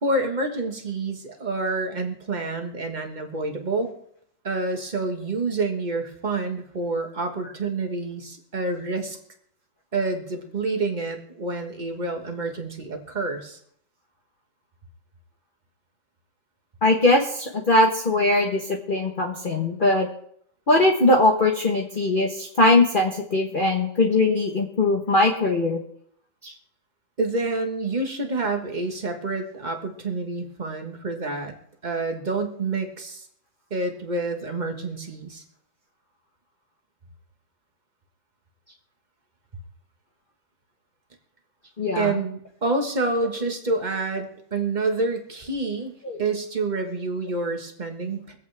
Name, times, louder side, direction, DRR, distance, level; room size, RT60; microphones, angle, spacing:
voice 1, 0.0-3.9 4.4-9.2 9.9-13.6 27.2-31.5 31.8-33.3 33.7-35.4 41.9-45.9 46.2-48.3, right 3 dB, 25° right, 3 dB, 1.5 m, -28 dB
voice 2, 16.8-20.1 20.7-25.8 26.4-26.5 41.8-42.1 46.0-46.2, left 2 dB, 30° left, 0 dB, 1.1 m, -21 dB
24.5 x 8.5 x 3.4 m, 0.68 s
omnidirectional pair, 2.1 m